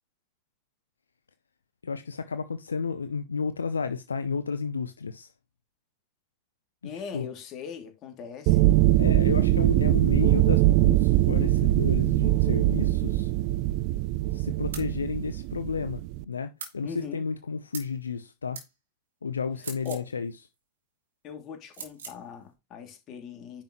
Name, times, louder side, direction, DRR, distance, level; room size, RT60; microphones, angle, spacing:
voice 1, 1.8-5.3 7.1-7.3 9.0-13.3 14.3-18.6 19.2-20.3, left 5 dB, 75° left, 0.6 m, -32 dB
voice 2, 6.8-8.6 16.8-17.2 19.8-20.1 21.2-23.6, left 7 dB, 35° left, 2.7 m, -40 dB
sound 1, 8.5-16.2, right 16 dB, 45° right, 0.5 m, -22 dB
sound 2, 14.7-14.9 16.6-16.8 17.7-17.9 18.5-18.7 19.6-20.1 21.7-22.2, right 5 dB, 65° right, 3.1 m, -40 dB
10.5 x 6.0 x 3.1 m
figure-of-eight pair, 90°, 0 cm